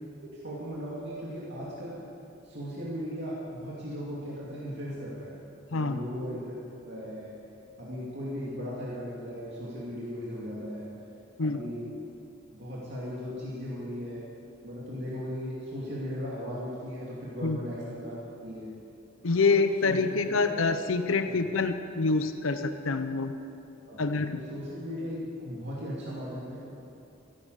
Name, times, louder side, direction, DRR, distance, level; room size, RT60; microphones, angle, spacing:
voice 1, 0.2-2.0 2.4-5.4 5.7-7.3 7.8-10.9 11.4-11.8 12.5-14.2 14.6-18.7 19.4-19.5 19.8-20.0 20.4-20.6 21.3-21.4 23.9-24.0 24.3-26.6, equal, 60° right, -6 dB, 2.4 m, -37 dB
voice 2, 19.2-23.3 24.0-24.4, left 4 dB, 85° left, 9 dB, 0.7 m, -26 dB
14.5 x 11.5 x 6.7 m, 2.7 s
head